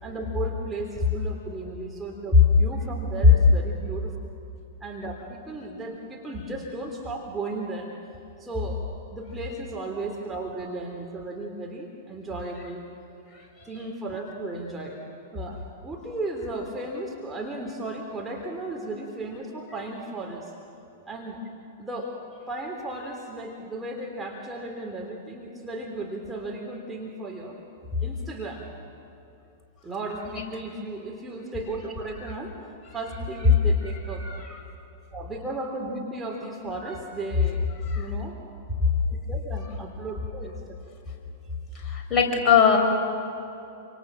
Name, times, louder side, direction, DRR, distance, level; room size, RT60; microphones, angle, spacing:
voice 1, 0.0-4.1 4.8-7.9 8.4-8.8 9.1-12.8 13.6-15.0 15.3-20.5 21.1-21.4 21.8-22.1 22.5-27.6 28.0-28.7 29.8-32.6 32.9-34.3 35.1-37.6 37.9-38.4 39.1-40.6, right 2 dB, 10° right, -1 dB, 3.5 m, -35 dB
voice 2, 41.8-42.8, left 7 dB, 25° left, 0 dB, 6.0 m, -21 dB
28.0 x 26.5 x 7.6 m, 2.7 s
figure-of-eight pair, 100°, 0 cm